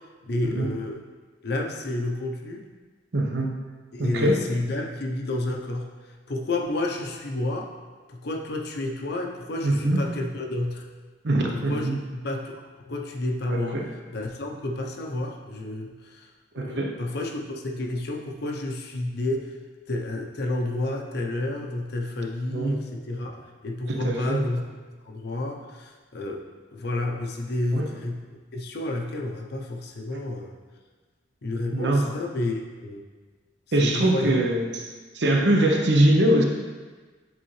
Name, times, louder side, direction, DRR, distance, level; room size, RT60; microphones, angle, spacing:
voice 1, 0.2-1.0 1.4-2.6 3.9-5.9 6.3-7.7 8.1-10.9 11.5-11.9 12.2-16.3 16.6-19.5 19.9-23.4 23.6-24.6 25.0-26.4 26.7-30.5 31.4-33.1 33.8-34.4, left 2 dB, 60° left, 2 dB, 0.6 m, -30 dB
voice 2, 3.1-3.5 4.0-4.4 9.6-10.0 11.2-12.0 13.5-13.9 16.5-17.0 22.5-22.7 23.9-24.4 27.7-27.9 31.7-32.1 33.7-34.7 35.1-36.4, right 1 dB, 65° right, 1 dB, 0.8 m, -22 dB
8.2 x 3.7 x 3.2 m, 1.4 s
head